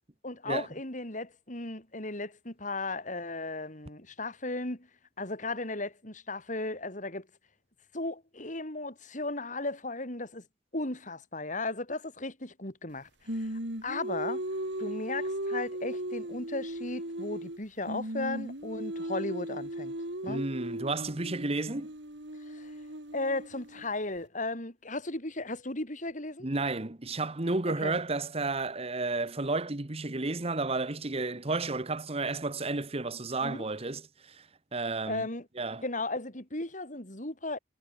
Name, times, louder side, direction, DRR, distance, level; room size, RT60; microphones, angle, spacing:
voice 1, 0.2-4.9 5.2-7.3 7.9-10.4 10.7-14.4 14.8-19.9 20.2-20.4 22.5-22.7 23.1-26.5 27.8-27.9 33.4-33.7 35.1-35.5 35.8-37.6, left 2 dB, 45° left, 5.8 m, -36 dB
Singing, 13.3-17.6 17.9-23.9, right 1 dB, 85° right, 5.9 m, -37 dB
voice 2, 20.3-21.9 26.4-34.0 34.3-34.4 34.7-35.3 35.6-35.8, right 3 dB, 35° right, 1.3 m, -32 dB
head